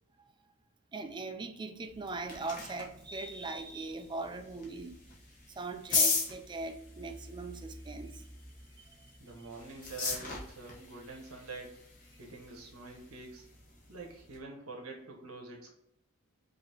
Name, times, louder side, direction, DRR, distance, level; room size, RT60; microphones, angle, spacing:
voice 1, 0.9-5.0 5.5-8.3 8.8-9.1, right 3 dB, 20° right, 7 dB, 0.3 m, -40 dB
sound 1, 1.8-14.4, left 4 dB, 40° left, 1.0 m, -39 dB
voice 2, 9.2-11.7 12.2-13.5 13.9-15.7, right 3 dB, 85° right, 0 dB, 1.1 m, -46 dB
4.9 x 2.8 x 2.8 m, 0.80 s
head